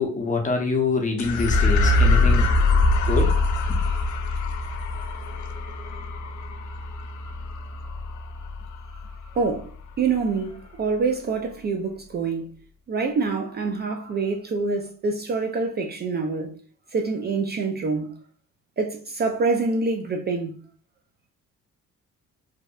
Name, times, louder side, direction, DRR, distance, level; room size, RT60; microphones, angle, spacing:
voice 1, 0.0-2.5 3.0-3.3 3.7-3.8, left 4 dB, 25° left, 0.6 m, -25 dB
sound 1, 1.2-9.8, left 2 dB, 70° left, 0.4 m, -23 dB
voice 2, 9.3-12.5 12.9-16.6 16.9-18.2 18.8-20.6, right 4 dB, 35° right, 0.4 m, -26 dB
2.6 x 2.0 x 2.3 m
cardioid pair, 90°, 30 cm